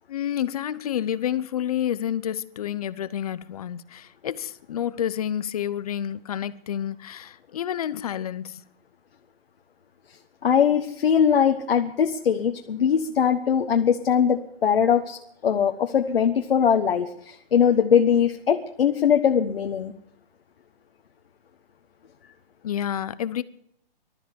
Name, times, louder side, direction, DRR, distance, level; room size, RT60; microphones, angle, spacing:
voice 1, 0.1-8.6 22.6-23.4, left 10 dB, 40° left, 0.7 m, -29 dB
voice 2, 10.4-19.9, left 8 dB, 70° left, 1.4 m, -21 dB
20.0 x 13.0 x 5.2 m
hypercardioid pair, 160°, 30 cm